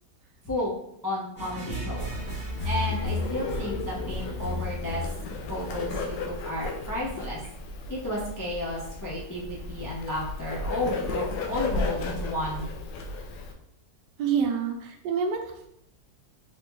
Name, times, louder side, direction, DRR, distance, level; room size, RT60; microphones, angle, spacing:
voice 1, 1.0-2.1 2.6-5.0 5.5-7.4 7.9-12.7, left 1 dB, 30° left, -5 dB, 0.3 m, -32 dB
sound 1, 1.4-6.4, left 2 dB, 10° left, 0.7 m, -34 dB
Bird, 1.9-13.5, left 3 dB, 90° left, 1.3 m, -35 dB
voice 2, 14.2-15.7, right 6 dB, 85° right, 4 dB, 1.2 m, -27 dB
3.8 x 3.3 x 3.1 m, 0.74 s
omnidirectional pair, 1.8 m